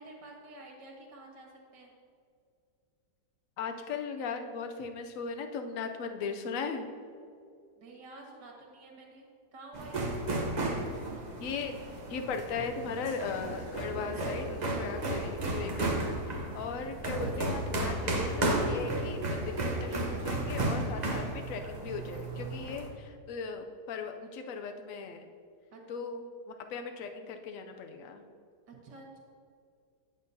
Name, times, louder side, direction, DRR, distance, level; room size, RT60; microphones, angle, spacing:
voice 1, 0.0-1.9 7.8-10.1 25.7-25.8 28.7-29.2, right 2 dB, 90° right, 0 dB, 2.0 m, -50 dB
voice 2, 3.6-6.9 11.4-11.8 12.1-16.0 16.3-25.3 25.9-28.3, left 5 dB, 65° left, 6 dB, 0.9 m, -38 dB
sound 1, 9.7-22.9, right 1 dB, 35° right, 0.7 m, -33 dB
8.6 x 8.1 x 2.7 m, 2.3 s
omnidirectional pair, 1.8 m